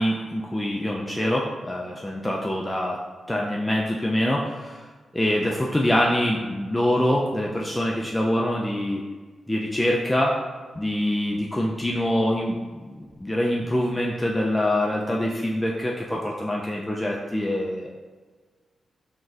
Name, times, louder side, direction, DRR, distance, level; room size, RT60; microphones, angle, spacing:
voice 1, 0.0-3.0 3.3-4.8 5.1-9.0 9.5-10.4 10.8-17.9, left 1 dB, 10° left, -2 dB, 0.3 m, -25 dB
5.8 x 2.6 x 2.4 m, 1.4 s
wide cardioid pair, 135°, 0 cm